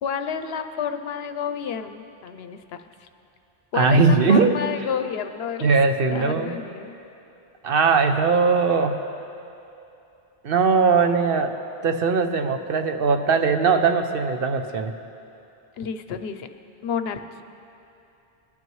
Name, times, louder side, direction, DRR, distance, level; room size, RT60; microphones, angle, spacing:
voice 1, 0.0-3.1 3.7-5.8 6.1-6.9 15.8-16.5 16.8-17.4, left 7 dB, 75° left, 8 dB, 0.9 m, -30 dB
voice 2, 3.7-4.5 5.6-6.6 7.6-9.0 10.4-11.6 11.8-14.9, right 4 dB, 65° right, 7 dB, 0.9 m, -20 dB
21.5 x 12.0 x 3.1 m, 2.8 s
omnidirectional pair, 1.1 m